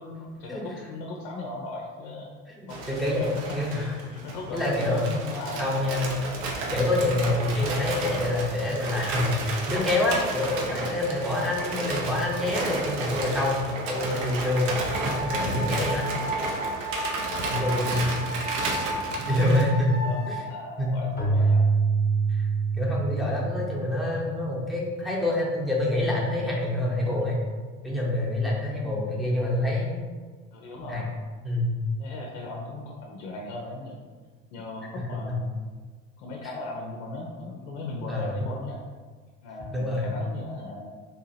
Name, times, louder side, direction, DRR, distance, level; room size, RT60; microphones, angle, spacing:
voice 1, 0.0-2.3 2.7-3.0 3.7-6.2 19.9-21.6 30.5-31.1 32.0-34.0 34.5-35.5 36.2-38.8 39.4-41.0, left 2 dB, 55° left, -1 dB, 0.6 m, -38 dB
sound 1, 2.7-19.6, right 2 dB, 55° right, 0.7 m, -32 dB
voice 2, 2.9-3.9 4.5-5.2 5.6-6.2 6.7-16.1 17.5-18.2 19.2-20.4 20.8-20.9 22.3-22.4 22.7-27.4 27.8-30.0 30.9-31.1 31.4-31.7 35.0-35.4 38.1-38.4 39.7-40.1, left 1 dB, ahead, -5 dB, 0.8 m, -26 dB
sound 2, 14.8-20.4, right 1 dB, 70° right, 1.3 m, -34 dB
Keyboard (musical), 21.2-24.7, right 4 dB, 25° left, 1.0 m, -25 dB
3.4 x 2.7 x 2.8 m, 1.4 s
figure-of-eight pair, 65°, 39 cm